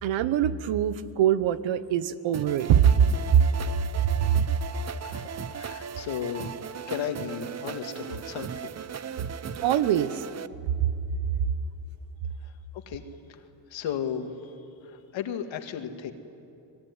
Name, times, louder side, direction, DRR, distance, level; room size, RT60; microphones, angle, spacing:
voice 1, 0.0-3.0 3.3-3.4 4.1-4.4 9.6-10.2 10.8-10.9, right 9 dB, 80° right, 14 dB, 1.1 m, -22 dB
sound 1, 2.3-10.5, right 7 dB, 35° right, 0.8 m, -37 dB
voice 2, 5.0-6.5 6.9-8.8 12.4-13.0 13.3-14.5 14.8-16.1, left 8 dB, 80° left, 7 dB, 2.0 m, -35 dB
24.5 x 20.5 x 9.7 m, 2.8 s
cardioid pair, 85°, 45 cm